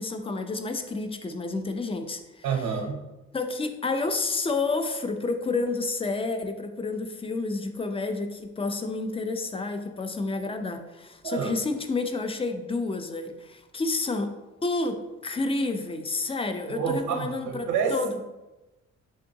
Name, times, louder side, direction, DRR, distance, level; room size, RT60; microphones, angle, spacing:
voice 1, 0.0-2.5 3.3-14.3 14.6-18.2, left 3 dB, 20° left, 7 dB, 0.4 m, -30 dB
voice 2, 2.4-3.1 11.2-11.5 16.7-18.2, right 6 dB, 80° right, 3 dB, 0.8 m, -28 dB
3.7 x 3.5 x 2.6 m, 1.0 s
cardioid pair, 90°, 30 cm